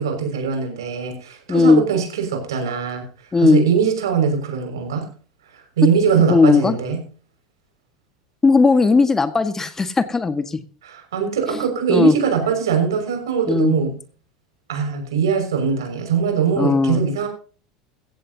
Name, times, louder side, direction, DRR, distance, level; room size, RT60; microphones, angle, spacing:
voice 1, 0.0-3.0 3.4-5.1 5.5-7.0 10.8-14.0 14.7-17.3, right 7 dB, 85° right, 4 dB, 6.1 m, -21 dB
voice 2, 1.5-1.8 3.3-3.6 6.3-6.8 8.4-10.4 11.9-12.1 13.5-13.7 16.6-17.0, left 4 dB, 20° left, 10 dB, 1.7 m, -16 dB
16.0 x 15.5 x 2.9 m, 0.39 s
hypercardioid pair, 90°, 2 cm